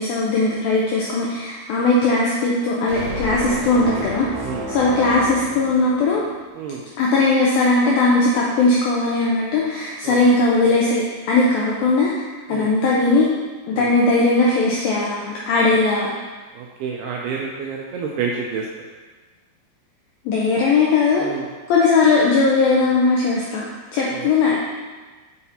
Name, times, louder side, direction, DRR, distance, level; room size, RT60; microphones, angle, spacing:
voice 1, 0.0-4.3 4.7-6.2 7.0-12.1 12.5-13.3 13.7-16.2 20.3-21.3 21.7-23.7 23.9-24.6, left 3 dB, 85° left, -4 dB, 2.1 m, -18 dB
sound 1, 2.9-6.4, right 1 dB, 65° right, 2.0 m, -31 dB
voice 2, 3.7-4.1 4.4-4.7 6.6-6.8 10.0-10.4 12.5-12.7 13.7-13.9 16.5-18.7 21.2-21.5 24.1-24.6, right 6 dB, 85° right, -1 dB, 2.3 m, -29 dB
7.0 x 5.8 x 2.8 m, 1.3 s
omnidirectional pair, 5.0 m